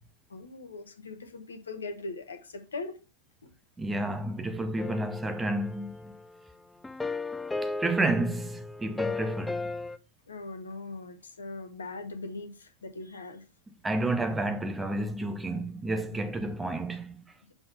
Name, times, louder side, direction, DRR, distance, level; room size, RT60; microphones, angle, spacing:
voice 1, 0.3-3.0 4.8-4.9 10.3-13.4 16.1-16.2, left 3 dB, 70° left, 1.1 m, -40 dB
voice 2, 3.8-6.2 7.6-9.7 13.8-17.2, right 2 dB, 10° right, 0.8 m, -30 dB
sound 1, 4.8-6.3 6.8-10.0, left 3 dB, 10° left, 0.4 m, -35 dB
6.0 x 3.9 x 5.4 m
figure-of-eight pair, 90°, 0 cm